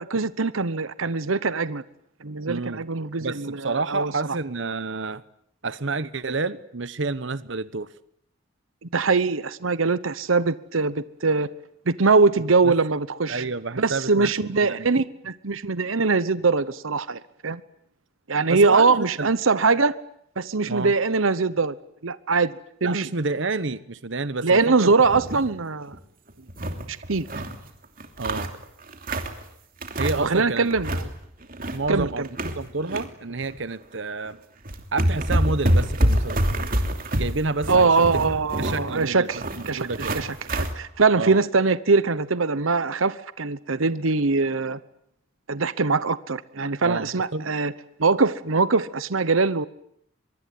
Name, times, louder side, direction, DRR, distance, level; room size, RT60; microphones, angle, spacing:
voice 1, 0.0-1.8 2.2-4.1 8.9-11.5 11.9-13.4 13.8-17.6 18.3-19.9 20.4-21.7 22.0-22.5 22.8-23.1 24.4-25.9 26.9-27.3 30.2-31.1 31.9-32.3 37.7-44.8 45.5-47.7 48.0-49.7, right 4 dB, 90° right, 15 dB, 1.0 m, -22 dB
voice 2, 2.5-2.9 3.2-5.2 5.6-7.9 12.6-12.7 13.3-14.3 14.6-14.9 18.5-19.3 20.7-20.9 22.8-24.9 28.2-28.5 30.0-30.7 31.7-34.4 34.9-36.4 37.1-39.3 39.6-40.2 41.2-41.4 46.8-47.4, right 3 dB, 65° right, 15 dB, 1.0 m, -29 dB
sound 1, 25.0-25.5 25.9-26.0 26.3-27.6 28.0-29.4 29.8-30.4 30.7-31.1 31.4-33.0 33.4-33.6 34.3-34.4 34.7-40.7, right 1 dB, 45° right, 3.0 m, -26 dB
24.5 x 23.0 x 9.5 m, 0.73 s
head